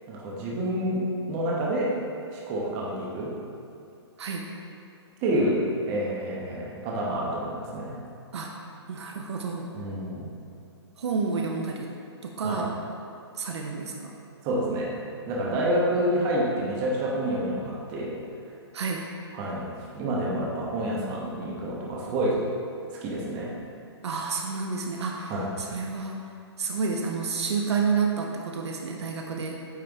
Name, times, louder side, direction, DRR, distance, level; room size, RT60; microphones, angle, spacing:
voice 1, 0.1-2.0 2.3-3.3 5.2-8.0 9.7-10.3 12.4-12.6 14.4-15.0 15.3-18.2 19.3-19.7 19.9-22.4 23.0-23.5 25.3-25.5, right 1 dB, 25° right, -4 dB, 1.0 m, -28 dB
voice 2, 8.9-9.7 11.0-11.9 12.2-12.8 13.3-14.1 18.7-19.1 24.0-25.3 25.6-26.2 26.6-29.6, right 5 dB, 75° right, 1 dB, 0.7 m, -29 dB
9.1 x 3.3 x 3.5 m, 2.6 s
hypercardioid pair, 155°, 15 cm